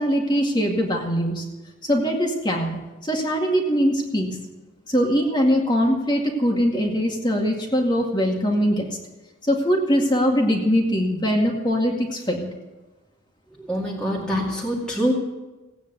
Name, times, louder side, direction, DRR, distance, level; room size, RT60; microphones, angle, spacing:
voice 1, 0.0-1.4 1.8-4.4 4.9-9.0 9.4-12.5, equal, 20° left, 1 dB, 2.1 m, -22 dB
voice 2, 13.6-15.1, equal, 5° left, -4 dB, 2.3 m, -25 dB
16.5 x 9.3 x 8.1 m, 1.1 s
head